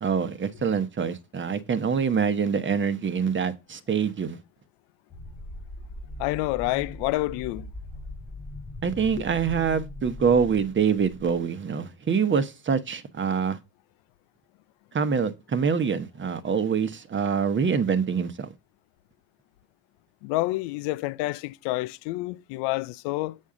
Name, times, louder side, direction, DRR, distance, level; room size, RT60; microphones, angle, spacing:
voice 1, 0.0-4.4 8.8-13.6 14.9-18.5, right 6 dB, 30° right, 1.0 m, -25 dB
sound 1, 5.1-11.4, left 1 dB, 15° left, 0.9 m, -40 dB
voice 2, 6.2-7.7 20.2-23.4, left 20 dB, 80° left, 0.6 m, -28 dB
7.1 x 6.3 x 3.7 m
supercardioid pair, 95°, 40 cm